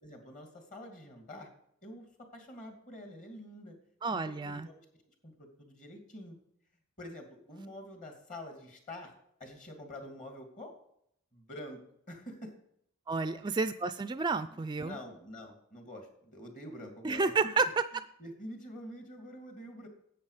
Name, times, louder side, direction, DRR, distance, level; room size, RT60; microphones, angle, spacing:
voice 1, 0.0-1.5 1.8-2.1 2.3-3.7 4.1-4.8 5.2-6.4 7.0-9.1 9.4-10.7 11.3-11.8 12.1-12.5 14.5-17.7 18.2-19.9, left 1 dB, 40° left, 4 dB, 2.6 m, -47 dB
voice 2, 4.0-4.7 13.1-15.0 17.0-17.7, right 4 dB, 20° right, 12 dB, 0.3 m, -30 dB
11.0 x 8.4 x 5.0 m, 0.72 s
head